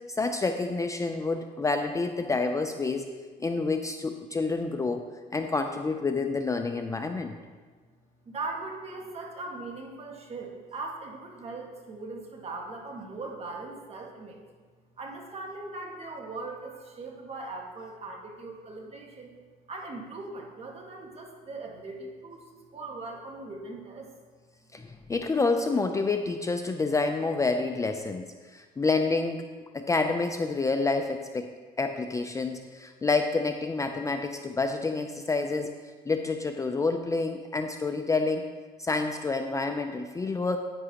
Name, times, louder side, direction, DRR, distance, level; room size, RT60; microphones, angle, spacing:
voice 1, 0.1-3.1 3.4-5.0 5.3-7.4 24.7-29.5 29.7-31.5 31.8-35.8 36.1-38.5 38.8-40.6, left 3 dB, 20° left, 6 dB, 0.4 m, -28 dB
voice 2, 8.2-14.4 15.0-19.3 19.7-22.4 22.7-24.1, right 3 dB, 35° right, 1 dB, 1.7 m, -39 dB
9.9 x 9.1 x 2.9 m, 1.5 s
cardioid pair, 110°, 17 cm